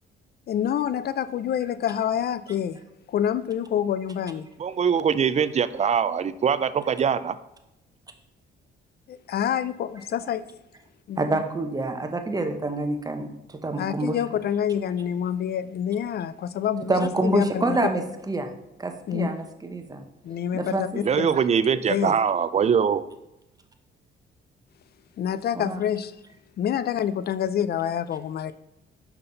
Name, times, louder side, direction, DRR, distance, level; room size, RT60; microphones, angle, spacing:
voice 1, 0.5-2.8 3.1-4.5 9.1-10.5 11.1-11.4 13.8-17.8 19.1-19.3 20.2-21.4 21.9-22.2 25.2-26.1 26.6-28.5, left 9 dB, 55° left, 0.4 m, -27 dB
voice 2, 4.6-7.4 21.0-23.1, right 7 dB, 35° right, 0.4 m, -22 dB
voice 3, 11.2-14.2 16.9-18.5 18.8-20.0 20.5-21.0 25.5-25.8, right 2 dB, 20° right, 0.9 m, -27 dB
5.8 x 5.7 x 3.9 m
cardioid pair, 90°, 20 cm